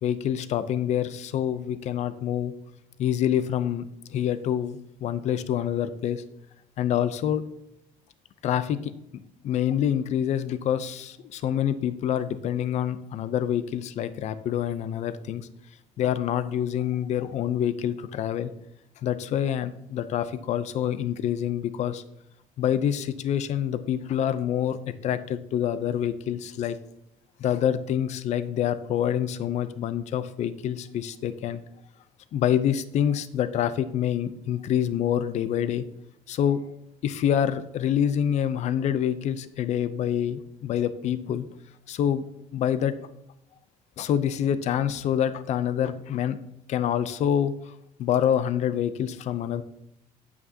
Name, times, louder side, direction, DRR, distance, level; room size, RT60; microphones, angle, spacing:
voice 1, 0.0-2.5 3.0-3.8 4.1-6.2 6.8-7.4 8.4-8.9 9.4-15.5 16.0-18.5 19.0-22.0 22.6-24.8 25.0-26.8 27.4-31.6 32.3-35.8 36.3-36.6 37.0-41.5 41.9-42.2 42.5-42.9 44.0-46.4 46.7-47.5 48.0-49.6, left 9 dB, 50° left, 13 dB, 0.5 m, -26 dB
9.2 x 8.3 x 2.8 m, 0.81 s
cardioid pair, 140°, 15 cm